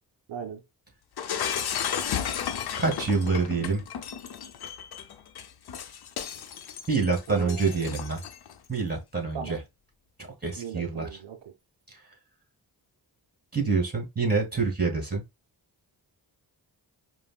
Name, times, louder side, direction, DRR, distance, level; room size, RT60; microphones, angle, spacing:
voice 1, 0.3-0.6 7.3-7.9 9.3-9.6 10.6-11.5, right 8 dB, 75° right, 0.6 m, -38 dB
Shatter, 1.2-8.5, left 8 dB, 60° left, 0.6 m, -34 dB
voice 2, 2.8-3.8 6.9-8.2 8.7-9.6 10.4-11.1 11.9-12.0 13.5-15.2, right 4 dB, 20° right, 1.8 m, -26 dB
5.0 x 2.0 x 2.3 m
cardioid pair, 50°, 44 cm